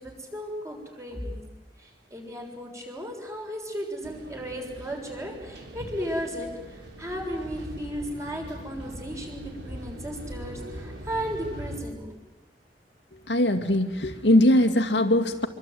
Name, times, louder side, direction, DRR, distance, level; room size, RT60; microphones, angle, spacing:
voice 1, 0.0-1.4 1.8-12.1, equal, 15° right, 1 dB, 6.6 m, -35 dB
sound 1, 4.0-11.8, equal, 90° right, 6.0 m, -41 dB
voice 2, 13.3-15.5, left 1 dB, 80° left, 7 dB, 2.3 m, -21 dB
26.0 x 24.5 x 9.3 m, 1.1 s
head